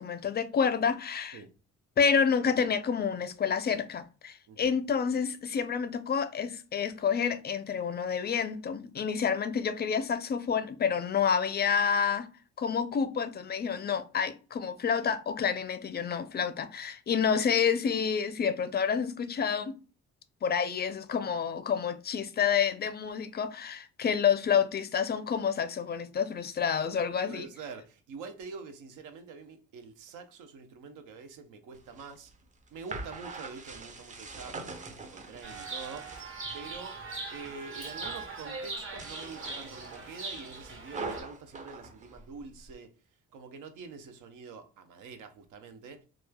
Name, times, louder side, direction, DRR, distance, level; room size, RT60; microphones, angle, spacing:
voice 1, 0.0-1.4 2.0-12.3 12.6-19.7 20.4-27.5, left 7 dB, 35° left, 0.4 m, -29 dB
voice 2, 27.1-32.3 32.7-37.0 37.3-42.9 43.3-46.1, right 4 dB, 85° right, 0.6 m, -46 dB
sound 1, 31.8-36.6 37.0-37.6 37.8-38.4 38.8-42.7, right 3 dB, 25° right, 0.5 m, -44 dB
Chirp tweet, 35.4-41.2, right 3 dB, 45° right, 1.0 m, -40 dB
3.0 x 2.3 x 2.2 m
cardioid pair, 90°, 30 cm